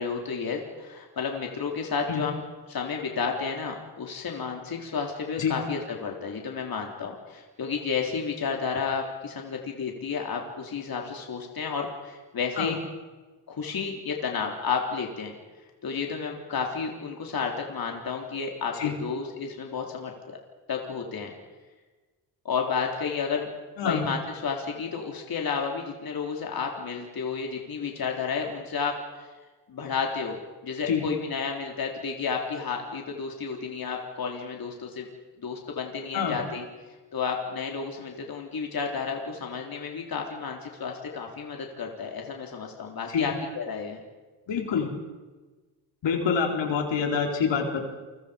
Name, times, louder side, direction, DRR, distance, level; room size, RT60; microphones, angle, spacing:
voice 1, 0.0-12.8 13.5-15.4 15.8-20.4 20.7-21.3 22.5-23.5 23.8-29.3 29.7-30.4 30.6-35.1 35.4-36.6 37.1-44.0, left 5 dB, 55° left, 1 dB, 3.6 m, -31 dB
voice 2, 44.5-44.9 46.0-47.8, left 6 dB, 80° left, 2 dB, 4.2 m, -26 dB
29.5 x 23.5 x 5.2 m, 1.3 s
cardioid pair, 125°, 43 cm